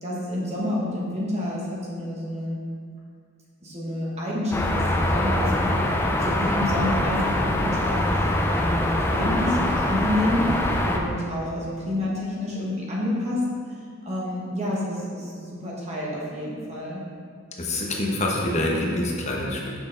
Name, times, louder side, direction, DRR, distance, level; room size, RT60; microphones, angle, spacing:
voice 1, 0.0-2.6 3.6-10.6 10.8-13.4 14.0-17.0, left 1 dB, 35° right, -5 dB, 1.2 m, -29 dB
sound 1, 4.5-11.0, left 1 dB, 10° left, 0.4 m, -23 dB
voice 2, 17.6-19.7, left 1 dB, 35° left, -1 dB, 1.0 m, -26 dB
6.5 x 6.1 x 3.9 m, 2.2 s
head